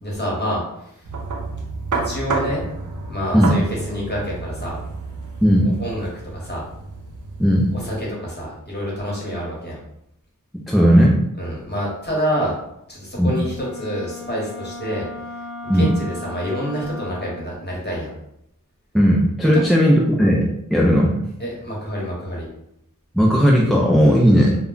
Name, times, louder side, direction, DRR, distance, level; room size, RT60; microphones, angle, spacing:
voice 1, 0.0-1.0 2.0-2.6 3.1-4.8 5.8-6.1 6.3-6.6 7.7-9.8 11.4-12.5 12.9-15.0 15.6-18.1 19.5-19.6 21.4-22.5 24.0-24.2, equal, 30° left, -4 dB, 1.1 m, -27 dB
sound 1, 1.0-8.0, right 3 dB, 65° right, 0.6 m, -30 dB
voice 2, 7.4-7.7 10.7-11.2 13.2-13.4 15.7-15.9 18.9-21.3 23.1-24.6, equal, ahead, -3 dB, 0.4 m, -16 dB
Wind instrument woodwind instrument, 13.5-17.6, left 2 dB, 75° left, 0.6 m, -36 dB
2.1 x 2.1 x 3.7 m, 0.78 s
wide cardioid pair, 55°, 33 cm